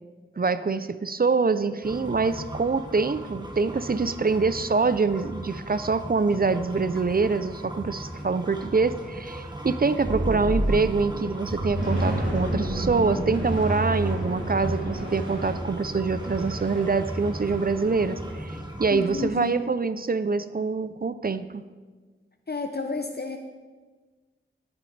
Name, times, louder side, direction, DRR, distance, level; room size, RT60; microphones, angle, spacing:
voice 1, 0.4-21.6, right 4 dB, 45° right, 13 dB, 0.4 m, -25 dB
sound 1, 1.8-19.3, right 1 dB, 20° right, 1.5 m, -37 dB
sound 2, 10.0-11.1 11.4-18.5, right 1 dB, 65° right, 3.4 m, -30 dB
voice 2, 18.9-19.6 22.5-23.4, left 4 dB, 50° left, 5 dB, 0.7 m, -31 dB
18.0 x 7.9 x 3.3 m, 1.4 s
wide cardioid pair, 55°, 21 cm